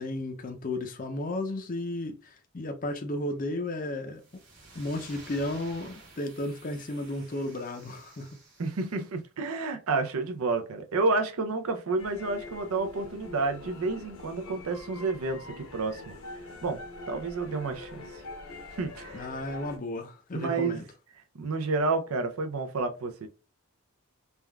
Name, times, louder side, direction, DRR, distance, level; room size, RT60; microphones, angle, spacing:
voice 1, 0.0-4.2 4.7-8.4 19.1-20.8, left 1 dB, 35° left, 0.5 m, -34 dB
sound 1, 4.1-9.1, right 2 dB, 50° right, 1.2 m, -52 dB
voice 2, 8.6-16.1 16.6-16.8 17.1-17.9 18.8-19.3 20.3-20.8 21.4-23.3, right 3 dB, 75° right, 0.5 m, -30 dB
sound 2, 12.0-19.8, left 2 dB, 80° left, 0.8 m, -44 dB
3.4 x 2.3 x 2.2 m
head